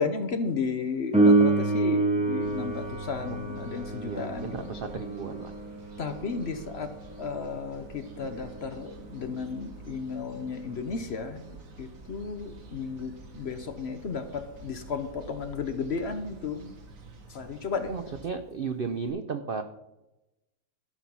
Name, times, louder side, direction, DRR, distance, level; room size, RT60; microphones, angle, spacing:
voice 1, 0.0-4.7 6.0-6.9 7.2-11.4 11.8-16.7 17.3-17.9, left 5 dB, 50° left, 8 dB, 0.9 m, -33 dB
Piano, 1.1-11.5 19.1-19.2, right 2 dB, 5° right, 2.9 m, -29 dB
sound 1, 2.4-18.3, right 2 dB, 55° right, 1.5 m, -48 dB
voice 2, 4.0-5.5 17.9-19.6, right 5 dB, 75° right, 9 dB, 0.5 m, -34 dB
14.0 x 5.6 x 6.0 m, 0.96 s
omnidirectional pair, 1.8 m